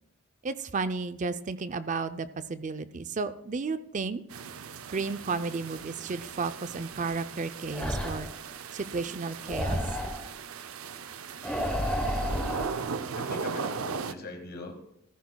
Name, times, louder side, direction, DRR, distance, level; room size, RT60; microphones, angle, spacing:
voice 1, 0.4-4.2 4.9-8.3 8.7-9.8, right 4 dB, 35° right, 13 dB, 0.5 m, -33 dB
sound 1, 4.3-14.1, right 5 dB, 90° right, 0.6 m, -38 dB
sound 2, 7.7-8.4 9.5-10.2 11.4-12.7, equal, 5° left, 1.0 m, -30 dB
voice 2, 13.1-14.7, left 2 dB, 50° left, 4 dB, 1.6 m, -41 dB
15.5 x 14.0 x 2.3 m, 0.80 s
head